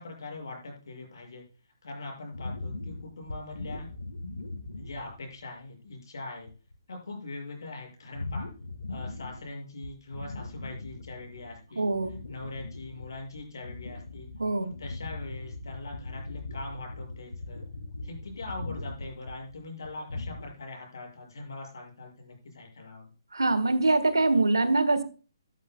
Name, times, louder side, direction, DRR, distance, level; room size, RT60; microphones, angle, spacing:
voice 1, 0.0-1.5 1.8-3.9 4.8-6.5 6.9-8.5 8.9-11.9 12.3-14.3 14.6-17.6 18.0-23.1, left 2 dB, 65° left, 1 dB, 6.7 m, -42 dB
sound 1, 2.3-5.4 5.9-6.0 6.4-6.7 8.1-9.5 9.8-11.5 11.8-20.5, left 2 dB, 80° left, 1.8 m, -39 dB
voice 2, 11.8-12.2 14.4-14.7 23.3-25.0, right 2 dB, 80° right, 13 dB, 1.6 m, -24 dB
14.0 x 12.5 x 2.3 m, 0.36 s
figure-of-eight pair, 135°, 2 cm